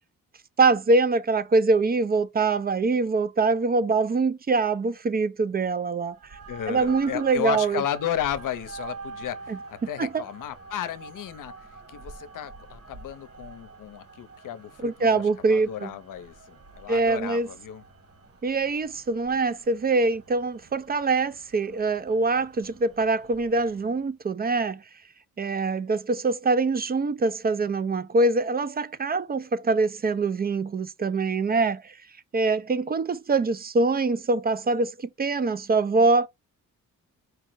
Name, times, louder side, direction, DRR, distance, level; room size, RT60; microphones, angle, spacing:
voice 1, 0.6-6.2 6.7-7.8 9.5-9.6 10.0-10.2 14.8-15.9 16.9-17.5 18.4-24.8 25.4-32.0 32.3-36.3, right 3 dB, 30° right, 0.5 m, -24 dB
sound 1, 6.1-24.0, right 4 dB, 45° right, 1.5 m, -46 dB
voice 2, 6.5-17.8, left 11 dB, 70° left, 0.7 m, -34 dB
4.7 x 2.0 x 4.6 m
cardioid pair, 75°, 33 cm